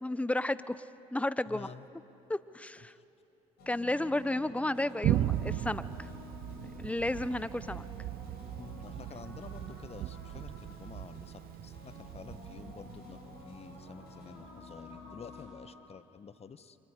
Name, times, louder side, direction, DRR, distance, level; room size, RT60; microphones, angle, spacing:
voice 1, 0.0-0.8 1.1-1.7 2.3-2.9 3.7-6.1 6.8-7.8, left 1 dB, 10° left, 16 dB, 0.7 m, -32 dB
voice 2, 1.4-1.9 2.8-3.0 8.6-16.8, left 6 dB, 35° left, 13 dB, 1.0 m, -50 dB
sound 1, 3.6-15.5, left 1 dB, 70° left, 6.8 m, -50 dB
Thunder, 5.0-14.4, right 13 dB, 60° right, 0.6 m, -37 dB
29.5 x 24.5 x 5.0 m, 2.9 s
hypercardioid pair, 55°, 17 cm